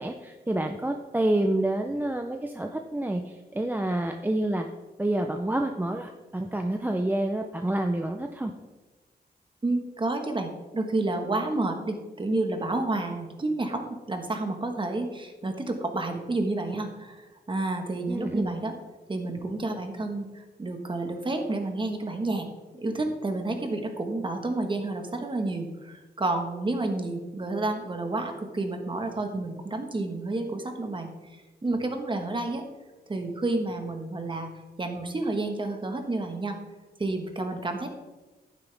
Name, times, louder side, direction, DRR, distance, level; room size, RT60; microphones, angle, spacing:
voice 1, 0.0-4.7 5.0-8.5 18.1-18.5, right 1 dB, 10° right, 4 dB, 0.6 m, -28 dB
voice 2, 9.6-18.7 19.1-22.5 22.8-31.1 31.6-32.6 33.1-34.5 34.8-36.6 37.0-37.9, right 2 dB, 30° right, 4 dB, 1.4 m, -30 dB
11.0 x 9.7 x 3.5 m, 1.2 s
wide cardioid pair, 100°, 17 cm